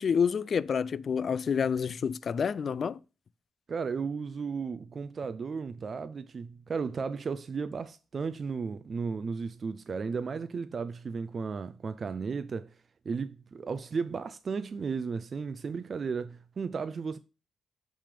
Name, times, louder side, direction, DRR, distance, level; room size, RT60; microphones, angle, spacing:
voice 1, 0.0-3.0, left 6 dB, 45° left, 0.3 m, -28 dB
voice 2, 3.7-12.8 13.1-17.2, right 5 dB, 40° right, 0.4 m, -34 dB
8.8 x 3.4 x 5.1 m
cardioid pair, 125°, 0 cm